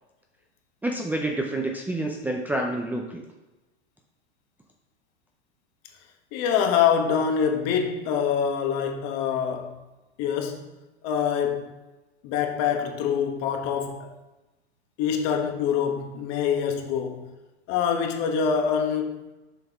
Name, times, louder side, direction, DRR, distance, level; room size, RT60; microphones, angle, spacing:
voice 1, 0.8-3.2, right 1 dB, 5° right, 0.5 m, -28 dB
voice 2, 6.3-9.8 10.2-10.7 11.0-11.7 12.2-14.1 15.0-17.3 17.7-19.2, left 7 dB, 50° left, 1.2 m, -25 dB
6.8 x 5.2 x 3.5 m
hypercardioid pair, 105°, 34 cm